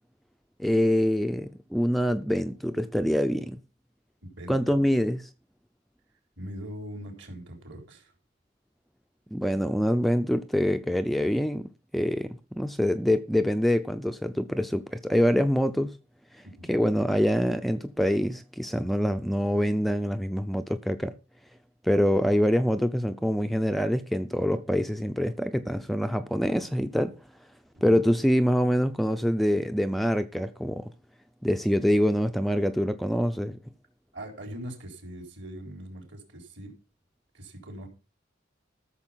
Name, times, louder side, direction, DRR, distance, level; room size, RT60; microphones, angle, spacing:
voice 1, 0.6-3.6 4.5-5.3 9.3-16.0 16.3-21.2 21.8-27.1 27.8-30.9 31.4-33.6, equal, ahead, 0.5 m, -25 dB
voice 2, 4.2-4.8 6.4-8.1 16.4-16.7 27.7-28.0 34.1-36.8 37.3-37.9, equal, 60° right, 4.1 m, -41 dB
13.5 x 6.9 x 5.7 m
head